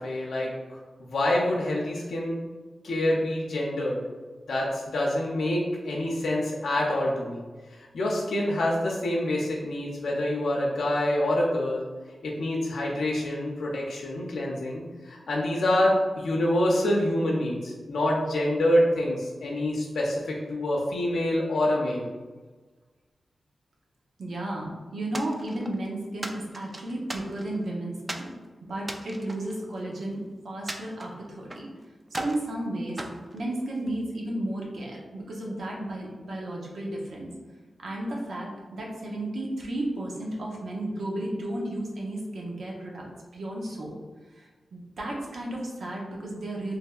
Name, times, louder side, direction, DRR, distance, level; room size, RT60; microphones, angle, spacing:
voice 1, 0.0-2.4 2.8-4.0 4.5-7.4 7.9-11.9 12.2-22.1, left 1 dB, 85° left, -3 dB, 0.5 m, -26 dB
voice 2, 24.2-28.3 28.7-31.7 32.1-33.0 33.3-37.3 37.8-43.1 43.3-43.9 44.3-46.8, right 1 dB, 80° right, -2 dB, 0.7 m, -33 dB
sound 1, 25.1-25.8 26.2-27.6 28.1-28.3 28.8-30.1 30.7-31.7 32.1-32.5 33.0-34.0, right 1 dB, 30° right, 0.3 m, -38 dB
3.3 x 3.0 x 2.3 m, 1.3 s
cardioid pair, 55°, 0 cm